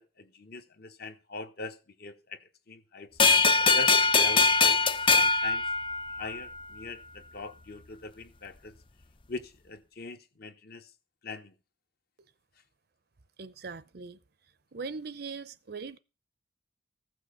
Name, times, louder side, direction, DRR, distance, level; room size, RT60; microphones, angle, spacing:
voice 1, 0.0-3.1 3.7-4.8 5.1-5.7 6.1-8.7 9.3-10.9 11.2-11.5, left 3 dB, 50° left, 1.1 m, -42 dB
sound 1, 3.2-6.4, left 4 dB, 25° left, 0.5 m, -22 dB
voice 2, 13.4-14.2 14.7-16.0, right 4 dB, 55° right, 0.7 m, -40 dB
15.0 x 6.3 x 6.6 m
head